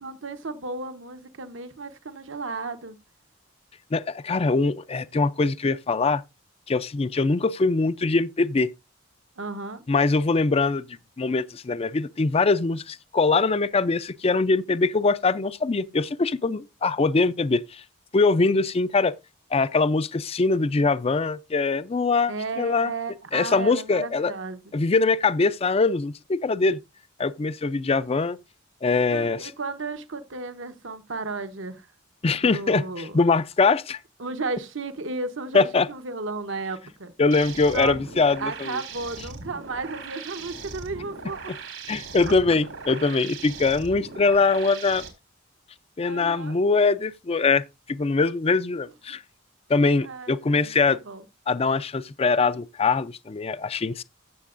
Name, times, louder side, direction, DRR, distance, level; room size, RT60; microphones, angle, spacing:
voice 1, 0.0-3.0 9.4-9.8 22.3-24.7 29.1-31.9 32.5-33.2 34.2-37.1 37.7-38.0 38.4-41.6 42.2-42.3 46.0-46.6 49.1-49.2 50.0-51.2, right 3 dB, 70° right, 1.0 m, -34 dB
voice 2, 3.9-6.2 6.7-8.7 9.9-10.8 11.2-17.8 18.1-19.2 19.5-22.9 23.3-24.3 24.7-26.8 27.2-28.4 28.8-29.5 32.2-34.0 35.5-35.9 37.2-38.8 41.9-45.0 46.0-49.2 49.7-51.0 51.5-54.0, left 3 dB, 30° left, 0.4 m, -22 dB
sound 1, 37.3-45.1, right 4 dB, 85° right, 3.8 m, -39 dB
15.5 x 6.8 x 2.5 m
head